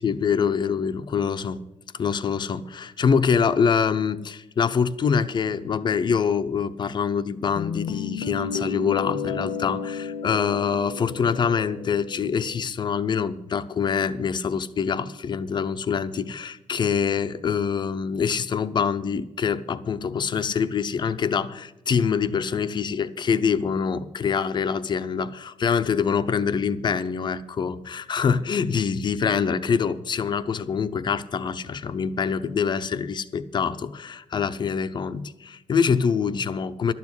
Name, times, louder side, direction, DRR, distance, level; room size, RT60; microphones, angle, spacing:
voice 1, 0.0-1.7 1.9-36.9, left 6 dB, 35° left, 0.6 m, -25 dB
Guitar, 7.6-12.6, left 6 dB, 65° left, 0.8 m, -32 dB
12.0 x 7.2 x 9.6 m
cardioid pair, 140°, 12 cm